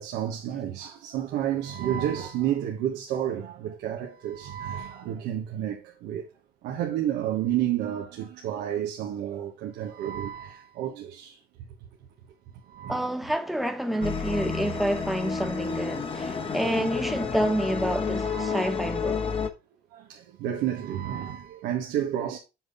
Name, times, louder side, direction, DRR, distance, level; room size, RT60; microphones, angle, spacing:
voice 1, 0.0-6.3 6.6-11.4 12.5-13.1 16.5-16.6 18.2-18.7 19.9-22.4, right 11 dB, 85° right, 1.3 m, -31 dB
voice 2, 12.9-19.3, right 1 dB, ahead, 1.2 m, -28 dB
sound 1, 14.0-19.5, left 5 dB, 30° left, 1.2 m, -30 dB
7.9 x 4.1 x 5.0 m
cardioid pair, 110°, 17 cm